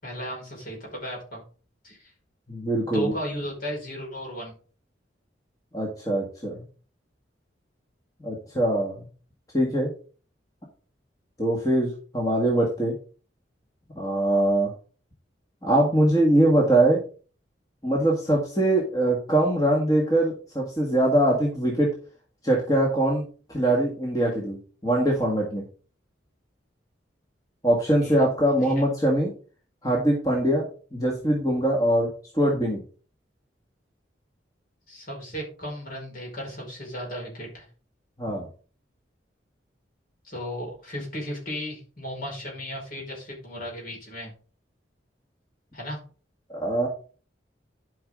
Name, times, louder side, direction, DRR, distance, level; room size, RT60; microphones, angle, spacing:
voice 1, 0.0-1.4 1.8-2.1 2.9-4.5 28.0-28.9 34.9-37.6 40.2-44.3 45.7-46.0, equal, 50° left, -1 dB, 5.0 m, -35 dB
voice 2, 2.5-3.1 5.7-6.6 8.2-9.0 9.5-9.9 11.4-12.9 14.0-14.7 15.6-17.0 17.8-21.9 22.4-23.2 23.5-24.6 24.8-25.6 27.6-29.3 29.8-32.1 32.3-32.8 38.2-38.4 46.5-46.9, right 1 dB, 20° left, -2 dB, 1.9 m, -22 dB
12.0 x 5.4 x 3.7 m, 0.39 s
head